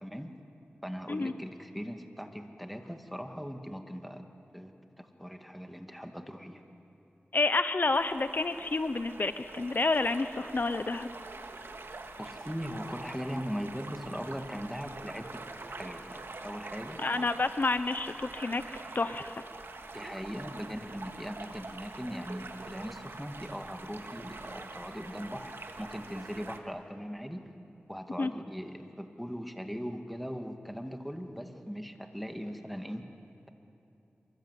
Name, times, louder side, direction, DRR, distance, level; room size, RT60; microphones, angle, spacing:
voice 1, 0.8-4.2 4.5-6.6 12.2-17.0 19.9-27.4 27.9-33.0, equal, ahead, 5 dB, 2.3 m, -40 dB
voice 2, 7.3-11.1 17.0-18.6 18.9-19.3 28.2-28.3, left 3 dB, 50° left, 11 dB, 0.8 m, -29 dB
sound 1, 7.9-26.6, right 3 dB, 70° right, 1.9 m, -45 dB
27.0 x 23.5 x 8.3 m, 2.9 s
wide cardioid pair, 55°, 4 cm